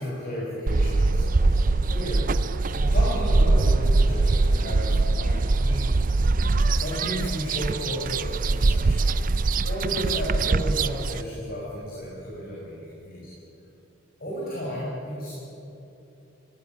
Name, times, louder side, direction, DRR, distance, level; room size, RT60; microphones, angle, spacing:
voice 1, 0.0-5.8 6.7-9.2 9.6-13.3 14.2-15.3, equal, 45° left, -6 dB, 5.6 m, -33 dB
sound 1, 0.7-11.2, right 3 dB, 40° right, 0.5 m, -22 dB
17.5 x 17.5 x 9.2 m, 2.9 s
head